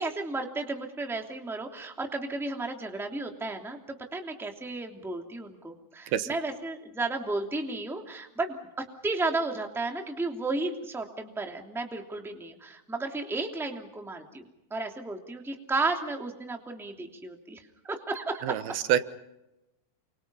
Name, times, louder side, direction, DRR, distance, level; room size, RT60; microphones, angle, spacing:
voice 1, 0.0-8.6 9.0-18.6, right 3 dB, ahead, 3 dB, 2.1 m, -33 dB
voice 2, 18.4-19.0, right 10 dB, 85° right, 11 dB, 3.1 m, -26 dB
29.0 x 26.5 x 5.6 m, 0.92 s
omnidirectional pair, 4.3 m